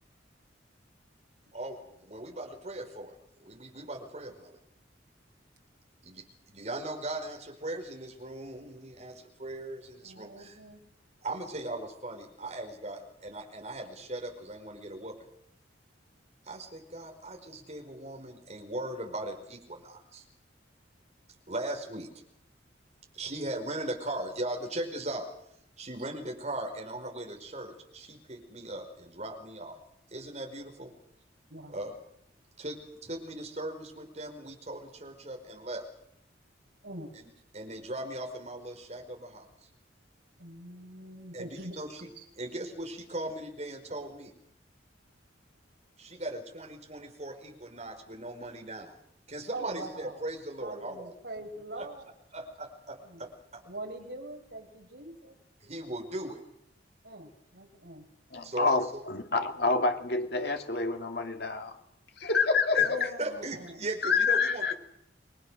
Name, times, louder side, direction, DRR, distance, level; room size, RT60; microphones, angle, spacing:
voice 1, 1.5-4.6 6.0-10.6 11.2-15.1 16.4-20.2 21.5-22.1 23.1-25.3 25.8-29.8 30.1-30.9 31.7-31.9 32.6-35.9 37.1-37.3 37.5-39.5 41.3-42.0 42.3-44.3 46.0-48.9 49.3-51.1 51.8-51.9 52.3-53.6 55.6-56.4 58.4-59.0 62.7-64.7, right 1 dB, 35° right, 5.0 m, -39 dB
voice 2, 10.0-10.8 31.5-31.8 36.8-37.1 40.4-41.8 49.5-50.2 50.6-52.0 53.0-53.3 53.6-55.3 57.0-58.1 62.8-63.8, right 2 dB, 65° right, 5.7 m, -43 dB
voice 3, 58.3-61.8 62.2-63.1 64.0-64.7, left 4 dB, 60° left, 2.4 m, -27 dB
29.5 x 22.0 x 6.5 m
head